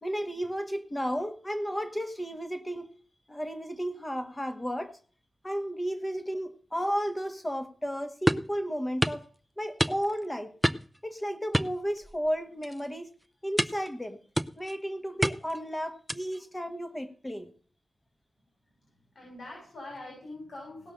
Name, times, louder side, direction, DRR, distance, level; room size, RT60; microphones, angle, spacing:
voice 1, 0.0-2.8 3.3-5.0 5.4-9.2 9.6-10.5 11.0-13.1 13.4-14.2 14.6-17.5, equal, 15° left, 1.4 m, -33 dB
sound 1, 8.3-8.5 9.0-9.2 9.8-10.2 10.6-11.0 11.5-12.3 12.6-12.9 13.6-13.9 14.4-14.8 15.2-15.6 16.1-16.4, equal, 5° right, 0.5 m, -28 dB
voice 2, 19.1-20.9, left 2 dB, 85° left, 6.9 m, -44 dB
17.5 x 5.9 x 6.7 m
wide cardioid pair, 150°, 0 cm